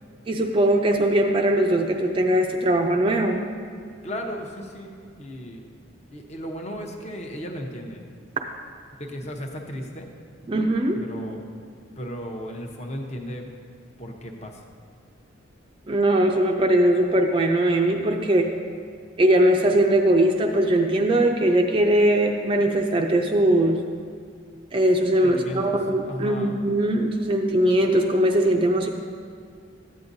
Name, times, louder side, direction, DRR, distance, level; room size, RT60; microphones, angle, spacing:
voice 1, 0.3-3.4 10.5-11.0 15.9-18.5 19.2-23.8 24.7-28.9, right 1 dB, 25° right, 2 dB, 0.4 m, -20 dB
voice 2, 4.0-5.6 6.1-8.0 9.0-10.1 10.9-11.4 12.0-13.5 14.0-14.6 25.2-25.8 26.0-26.6, equal, 35° left, 2 dB, 0.8 m, -35 dB
13.5 x 8.5 x 2.7 m, 2.2 s
head